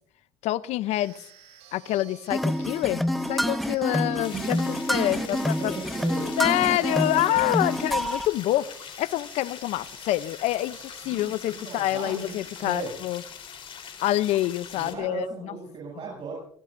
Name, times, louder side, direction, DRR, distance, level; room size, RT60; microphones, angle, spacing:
voice 1, 0.4-1.1 1.7-5.8 6.4-13.2 14.0-15.6, left 15 dB, 70° left, 0.7 m, -27 dB
sound 1, 0.9-12.9, right 9 dB, 85° right, 6.2 m, -52 dB
sound 2, 2.3-8.3, equal, ahead, 1.4 m, -27 dB
voice 2, 4.0-7.2 11.0-12.9 14.7-16.4, right 4 dB, 50° right, 7.9 m, -37 dB
sound 3, 4.2-14.9, left 7 dB, 50° left, 4.0 m, -43 dB
28.0 x 18.0 x 2.6 m
supercardioid pair, 90°, 11 cm